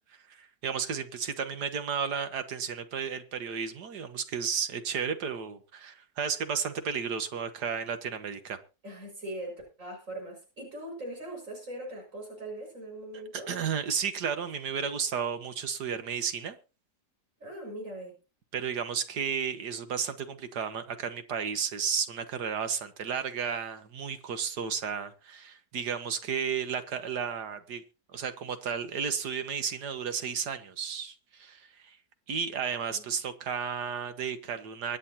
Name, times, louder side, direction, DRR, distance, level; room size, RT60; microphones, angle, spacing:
voice 1, 0.3-8.6 13.1-16.6 18.5-27.8 28.1-32.0 32.3-35.0, right 7 dB, 85° right, 1.9 m, -33 dB
voice 2, 8.8-13.5 17.4-18.1 32.9-33.0, right 1 dB, 50° right, 6.5 m, -41 dB
24.0 x 9.3 x 2.9 m
omnidirectional pair, 1.7 m